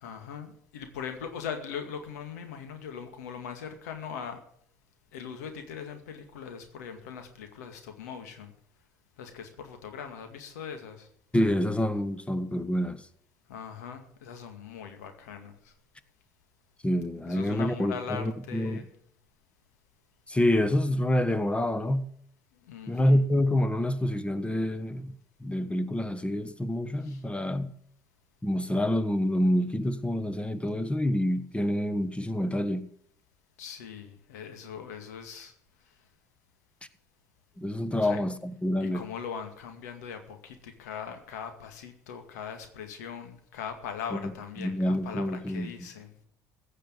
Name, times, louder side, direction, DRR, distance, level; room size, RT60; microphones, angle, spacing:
voice 1, 0.0-4.4 5.1-8.5 9.2-11.1 13.5-15.7 17.3-18.9 22.7-23.2 27.0-27.2 33.6-35.5 38.0-38.2 38.8-46.1, left 7 dB, 85° left, 2.1 m, -40 dB
voice 2, 11.3-13.1 16.8-18.9 20.3-22.1 22.9-27.7 28.4-32.9 37.6-39.1 44.1-44.3 44.6-45.9, left 1 dB, 15° left, 1.5 m, -27 dB
16.0 x 6.6 x 9.5 m
hypercardioid pair, 60°, 9 cm